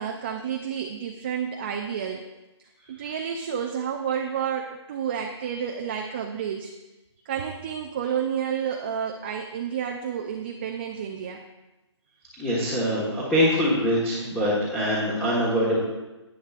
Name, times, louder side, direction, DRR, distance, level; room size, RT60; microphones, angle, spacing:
voice 1, 0.0-2.3 2.9-6.7 7.3-11.4, right 8 dB, 25° right, 3 dB, 0.4 m, -30 dB
voice 2, 12.4-15.8, equal, 5° left, -8 dB, 1.3 m, -23 dB
10.5 x 9.5 x 2.5 m, 1.0 s
hypercardioid pair, 155°, 15 cm